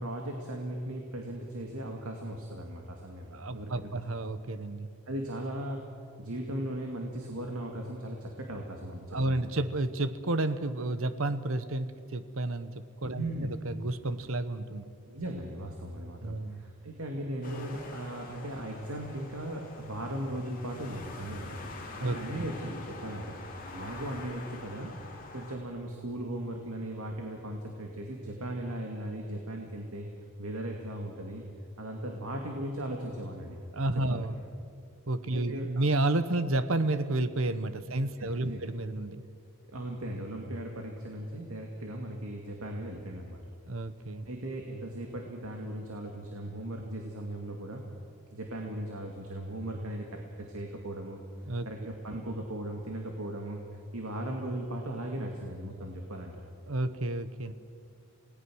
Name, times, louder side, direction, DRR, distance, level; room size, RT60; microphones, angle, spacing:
voice 1, 0.0-3.9 5.1-5.9 6.2-9.5 13.1-13.5 15.1-21.7 22.0-23.4 23.7-24.9 25.3-30.1 30.4-31.4 31.8-33.6 34.1-34.3 35.3-35.9 38.2-38.6 39.7-43.4 44.3-47.8 48.3-51.2 51.7-56.3, right 1 dB, 85° right, 1 dB, 2.3 m, -38 dB
voice 2, 3.3-4.9 9.1-12.7 13.0-13.3 13.6-14.9 16.2-16.6 22.0-22.5 33.7-34.4 35.1-39.2 43.7-44.3 51.5-51.7 56.7-57.5, right 2 dB, 70° right, 12 dB, 1.1 m, -31 dB
sound 1, 17.4-25.6, left 2 dB, 40° left, 3.1 m, -45 dB
28.0 x 18.5 x 6.4 m, 2.3 s
head